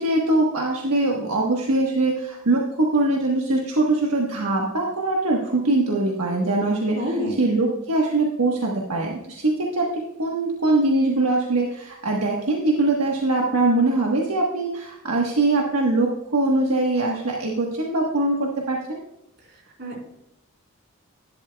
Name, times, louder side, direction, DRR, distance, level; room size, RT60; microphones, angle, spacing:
voice 1, 0.0-7.0 7.4-19.0, right 2 dB, 80° right, -1 dB, 1.3 m, -22 dB
voice 2, 6.9-7.3 19.5-20.0, equal, 50° right, -2 dB, 4.0 m, -29 dB
11.5 x 11.0 x 2.3 m, 0.86 s
head